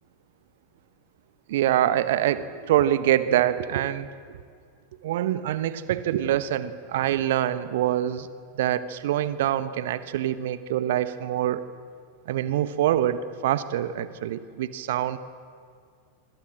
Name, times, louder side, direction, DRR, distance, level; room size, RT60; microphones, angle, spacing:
voice 1, 1.5-4.4 5.0-8.3 8.5-11.6 12.3-15.2, right 12 dB, 55° right, 14 dB, 1.2 m, -25 dB
26.0 x 25.5 x 7.5 m, 2.2 s
figure-of-eight pair, 90°, 0 cm